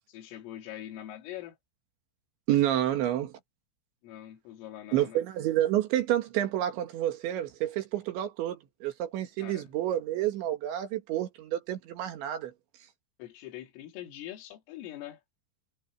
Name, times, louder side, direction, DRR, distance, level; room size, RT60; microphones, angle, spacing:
voice 1, 0.1-1.6 4.0-5.2 9.4-9.7 13.2-15.2, left 13 dB, 80° left, 4.7 m, -43 dB
voice 2, 2.5-3.4 4.9-12.5, right 12 dB, 70° right, 3.8 m, -29 dB
omnidirectional pair, 5.9 m